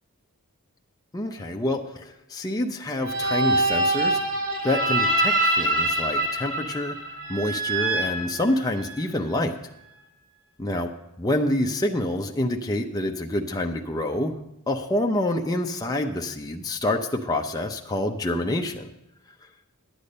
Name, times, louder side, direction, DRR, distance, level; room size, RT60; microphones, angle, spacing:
voice 1, 1.1-4.2 4.6-7.0 7.3-9.6 10.6-10.9 11.2-14.3 14.7-18.9, left 1 dB, 15° left, 2 dB, 0.6 m, -27 dB
sound 1, 3.0-9.0, right 1 dB, 60° right, 2.5 m, -25 dB
11.0 x 8.5 x 5.3 m, 0.85 s
head